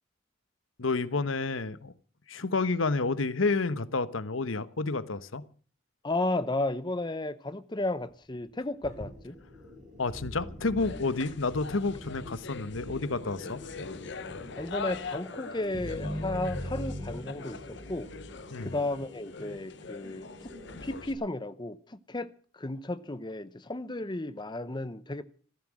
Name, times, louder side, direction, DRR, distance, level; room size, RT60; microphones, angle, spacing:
voice 1, 0.8-1.9 2.3-5.4 10.0-13.6 18.5-18.7, left 3 dB, 90° left, 1.1 m, -30 dB
voice 2, 6.0-9.3 14.6-18.1 18.6-20.5 20.8-25.2, left 2 dB, 20° left, 0.7 m, -34 dB
sound 1, 8.8-21.1, equal, 40° right, 5.8 m, -42 dB
sound 2, 10.8-21.1, left 4 dB, 60° left, 1.0 m, -43 dB
15.0 x 14.5 x 6.2 m
head